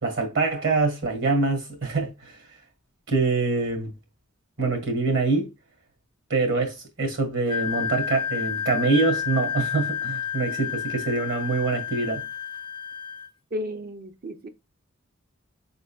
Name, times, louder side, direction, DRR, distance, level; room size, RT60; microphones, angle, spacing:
voice 1, 0.0-2.4 3.1-3.9 4.6-5.5 6.3-12.2, right 3 dB, 60° right, 1.8 m, -25 dB
Wind instrument woodwind instrument, 7.5-13.3, left 8 dB, 25° left, 0.3 m, -30 dB
voice 2, 13.5-14.5, left 1 dB, 45° right, 0.6 m, -33 dB
5.3 x 3.9 x 2.3 m
head